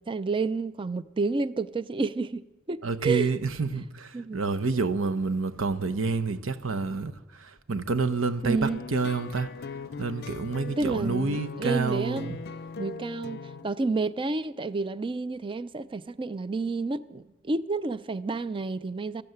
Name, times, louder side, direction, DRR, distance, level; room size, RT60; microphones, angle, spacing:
voice 1, 0.0-3.3 4.1-4.4 8.4-8.8 10.8-12.3 12.8-19.2, right 3 dB, 25° right, 0.5 m, -30 dB
voice 2, 2.8-12.4, right 4 dB, 85° right, 0.9 m, -29 dB
sound 1, 8.6-13.7, left 5 dB, 55° left, 0.5 m, -39 dB
14.0 x 12.5 x 8.0 m
head